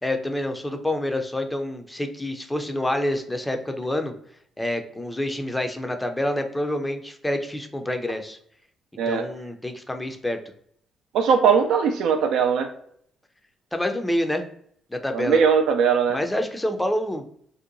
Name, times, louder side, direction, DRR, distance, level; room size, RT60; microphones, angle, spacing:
voice 1, 0.0-4.1 4.6-8.4 9.1-10.4 13.7-14.4 14.9-15.4 16.1-17.2, left 1 dB, 10° left, 6 dB, 0.5 m, -27 dB
voice 2, 11.1-12.7 15.1-16.2, right 6 dB, 75° right, 4 dB, 0.3 m, -20 dB
2.7 x 2.1 x 2.5 m, 0.64 s
hypercardioid pair, 50°, 0 cm